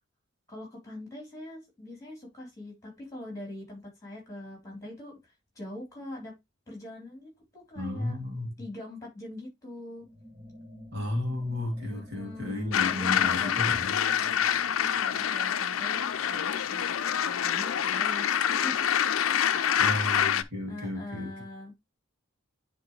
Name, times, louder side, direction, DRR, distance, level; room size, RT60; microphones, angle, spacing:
voice 1, 0.5-6.3 6.7-8.2 8.6-10.1 11.8-13.5 14.9-18.9 19.5-19.8 20.7-21.7, left 1 dB, 15° left, 3.6 m, -43 dB
voice 2, 7.8-8.5 10.9-13.9 19.8-21.3, left 1 dB, 50° right, 2.2 m, -33 dB
sound 1, 10.0-16.7, left 1 dB, 30° right, 2.6 m, -49 dB
sound 2, 12.7-20.4, left 9 dB, 75° left, 0.5 m, -26 dB
10.0 x 3.6 x 3.1 m
head